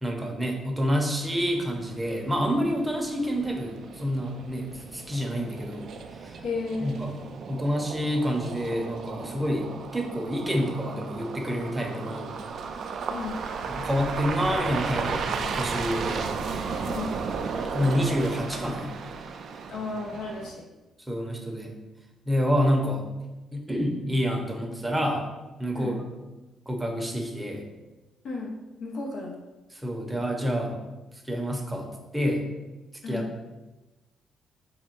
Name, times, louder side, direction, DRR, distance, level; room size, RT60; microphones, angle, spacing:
voice 1, 0.0-5.9 6.2-6.4 6.8-7.1 7.5-12.4 13.7-16.3 17.7-19.0 21.1-21.7 22.3-23.0 23.5-25.2 25.6-25.9 26.7-27.6 29.7-30.8 31.2-31.9 32.1-32.4 33.1-33.2, equal, 10° right, 2 dB, 0.7 m, -28 dB
sound 1, 1.2-20.5, right 5 dB, 60° right, 0.3 m, -35 dB
voice 2, 6.4-7.0 13.1-13.4 16.9-17.2 19.7-20.6 25.8-26.0 28.2-28.5 28.8-29.3 33.0-33.3, left 3 dB, 75° left, -1 dB, 0.7 m, -33 dB
3.6 x 2.2 x 4.4 m, 1.1 s
cardioid pair, 90°, 0 cm